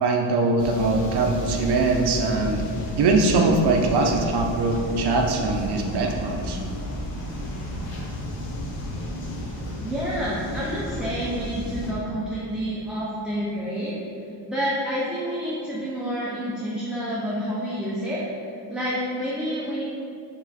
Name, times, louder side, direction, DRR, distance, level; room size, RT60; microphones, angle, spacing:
voice 1, 0.0-2.6 3.0-6.6, right 3 dB, 60° right, 2 dB, 0.6 m, -22 dB
sound 1, 0.6-11.9, equal, 80° left, 0.8 m, -32 dB
voice 2, 9.8-13.9 14.5-19.8, equal, ahead, -8 dB, 0.3 m, -29 dB
4.8 x 3.4 x 2.7 m, 2.6 s
cardioid pair, 135°, 44 cm